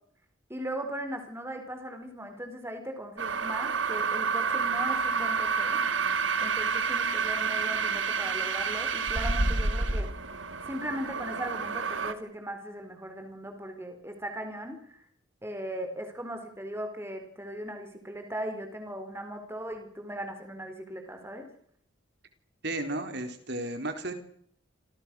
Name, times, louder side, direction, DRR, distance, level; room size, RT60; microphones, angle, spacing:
voice 1, 0.5-5.8 6.4-10.1 10.7-15.0 15.4-21.5, right 1 dB, 10° right, 5 dB, 4.6 m, -38 dB
sound 1, 3.2-12.1, right 5 dB, 70° right, 2.3 m, -29 dB
voice 2, 22.6-24.1, right 2 dB, 55° right, 7 dB, 4.2 m, -33 dB
29.0 x 25.5 x 6.4 m, 0.66 s
head